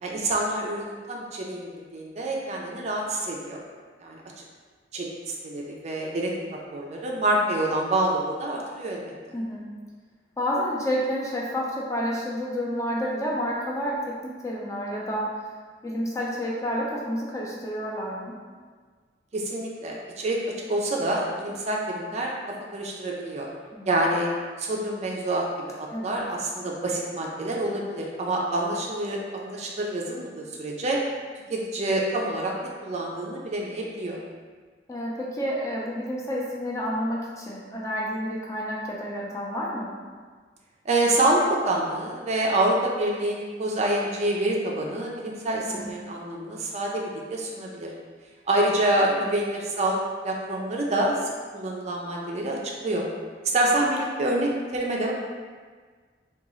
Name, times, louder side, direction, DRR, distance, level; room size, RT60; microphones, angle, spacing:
voice 1, 0.0-3.6 4.0-4.4 4.9-9.0 19.3-22.3 22.7-23.5 23.9-24.3 24.6-25.4 25.8-31.0 31.5-32.5 32.8-34.2 40.9-47.9 48.5-53.1 53.4-55.1, right 1 dB, 40° right, -1 dB, 0.4 m, -27 dB
voice 2, 10.4-15.3 15.8-18.3 23.7-23.9 25.9-26.2 34.9-39.9 45.7-45.9 49.2-49.3, equal, 15° left, -4 dB, 0.5 m, -30 dB
3.7 x 2.3 x 3.0 m, 1.5 s
head